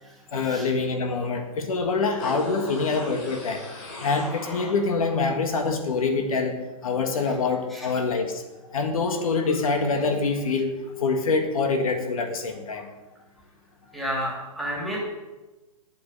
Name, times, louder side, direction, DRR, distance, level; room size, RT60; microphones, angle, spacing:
voice 1, 0.3-3.6 4.0-8.4 8.7-12.9, left 4 dB, 65° left, 5 dB, 1.7 m, -25 dB
sound 1, 2.2-5.2 5.5-5.6, left 2 dB, 35° left, 3.6 m, -38 dB
voice 2, 13.9-15.0, equal, ahead, -5 dB, 2.5 m, -31 dB
11.5 x 8.8 x 5.5 m, 1.1 s
hypercardioid pair, 155°, 19 cm